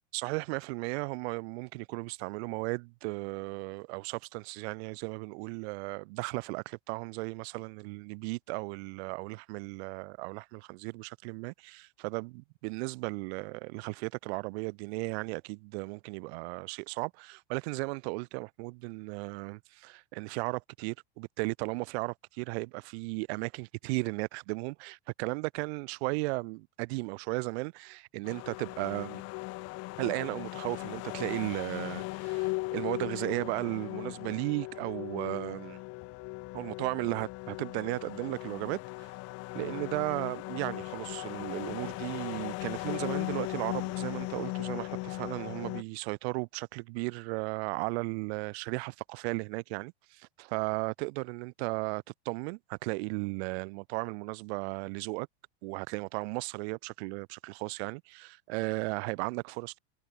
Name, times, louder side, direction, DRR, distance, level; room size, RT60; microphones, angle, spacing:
voice 1, 0.1-29.2 30.0-35.8 36.5-39.1 39.5-55.3 55.6-59.8, right 27 dB, 65° right, 2.0 m, -35 dB
sound 1, 28.2-45.8, left 23 dB, 45° left, 0.9 m, -38 dB
supercardioid pair, 140°, 35 cm